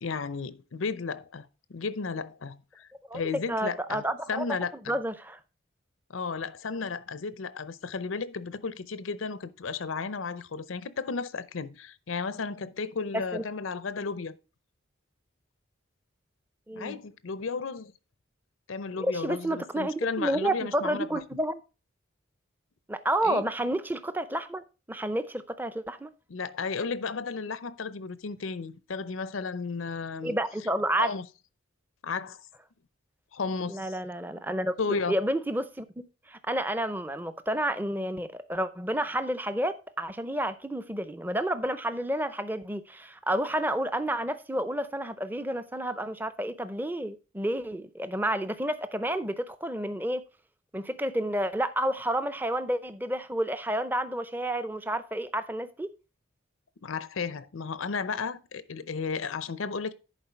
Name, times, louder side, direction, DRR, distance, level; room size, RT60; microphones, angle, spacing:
voice 1, 0.0-2.9 3.1-5.0 6.1-14.4 16.8-17.9 18.7-21.2 23.2-23.4 26.3-30.4 31.0-31.3 32.0-32.4 33.3-34.0 34.8-35.2 56.8-59.9, left 4 dB, 85° left, 0.6 m, -34 dB
voice 2, 3.5-4.4 4.9-5.4 13.1-13.4 16.7-17.0 19.0-21.6 22.9-26.1 30.2-31.1 33.7-50.2 50.7-55.9, right 1 dB, 10° right, 0.5 m, -30 dB
11.0 x 4.6 x 4.5 m
head